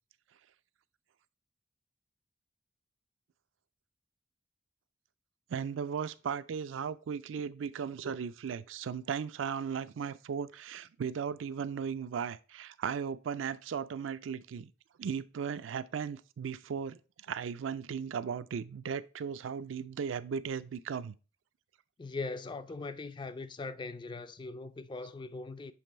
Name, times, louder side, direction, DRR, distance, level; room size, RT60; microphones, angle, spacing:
voice 1, 5.5-14.7 15.0-17.0 17.3-21.1, right 7 dB, 90° right, 0.4 m, -36 dB
voice 2, 22.0-25.7, left 3 dB, 25° left, 0.3 m, -40 dB
7.2 x 3.3 x 4.2 m
head